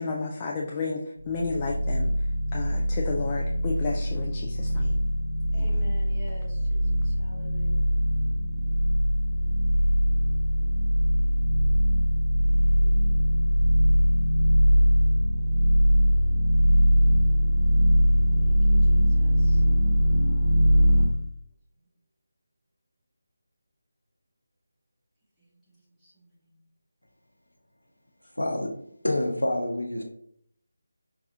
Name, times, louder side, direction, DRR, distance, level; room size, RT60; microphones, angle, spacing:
voice 1, 0.0-5.0 5.6-5.9, left 4 dB, 20° left, -1 dB, 0.3 m, -32 dB
sound 1, 1.2-21.1, equal, 60° left, 1.0 m, -22 dB
voice 2, 5.5-7.9 12.5-13.3 18.4-19.6 25.4-26.6, right 1 dB, ahead, -13 dB, 1.1 m, -48 dB
voice 3, 28.4-28.8 29.0-30.0, left 1 dB, 90° left, 3 dB, 0.8 m, -27 dB
4.7 x 2.3 x 2.7 m, 0.66 s
figure-of-eight pair, 160°, 0 cm